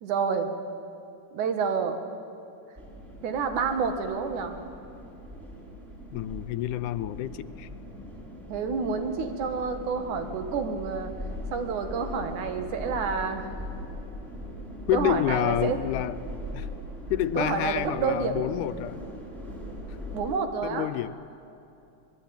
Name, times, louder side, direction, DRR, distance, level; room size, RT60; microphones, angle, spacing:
voice 1, 0.0-0.5 1.3-2.0 3.2-4.6 8.5-11.1 11.5-13.5 14.9-15.8 17.4-18.4 20.1-20.9, right 5 dB, 75° right, 7 dB, 3.0 m, -29 dB
sound 1, 2.8-20.4, equal, 20° right, 5.1 m, -40 dB
voice 2, 6.1-7.7 14.9-16.2 16.5-16.7 17.1-19.1 20.6-21.2, left 13 dB, 85° left, 13 dB, 2.2 m, -28 dB
24.5 x 20.0 x 8.8 m, 2.7 s
omnidirectional pair, 3.5 m